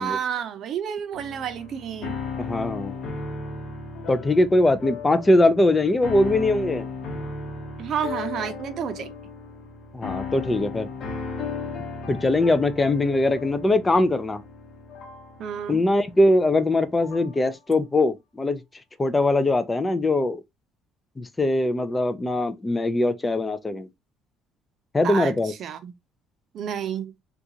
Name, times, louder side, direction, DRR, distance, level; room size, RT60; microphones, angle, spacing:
voice 1, 0.0-2.2 7.8-9.1 15.4-15.8 25.0-25.3 25.6-25.9 26.5-27.1, right 8 dB, 50° right, 0.5 m, -30 dB
sound 1, 1.1-17.4, left 4 dB, 50° left, 1.1 m, -36 dB
voice 2, 2.4-3.0 4.1-6.9 9.9-10.9 12.1-14.4 15.7-18.6 19.0-20.4 21.2-23.9 24.9-25.5, left 2 dB, 15° left, 0.4 m, -21 dB
3.8 x 2.3 x 2.8 m
cardioid pair, 135°, 0 cm